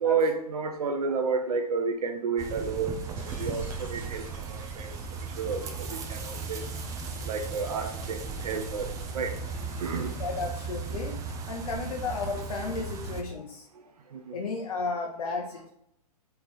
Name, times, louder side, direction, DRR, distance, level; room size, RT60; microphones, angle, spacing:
voice 1, 0.0-3.1 3.4-4.9 5.4-6.6 7.2-9.3 9.8-10.1 14.1-14.4, right 5 dB, 70° right, 5 dB, 0.7 m, -31 dB
sound 1, 2.4-13.2, right 5 dB, 15° right, 0.5 m, -36 dB
Shatter, 3.0-10.4, right 3 dB, 55° right, 1.9 m, -51 dB
Squeak, 4.9-11.0 11.3-11.5 12.0-12.8, left 2 dB, 15° left, 1.0 m, -49 dB
voice 2, 10.2-11.2 11.5-13.6 14.3-15.7, left 4 dB, 65° left, 0 dB, 0.8 m, -33 dB
3.6 x 3.4 x 4.3 m, 0.75 s
hypercardioid pair, 125°, 20 cm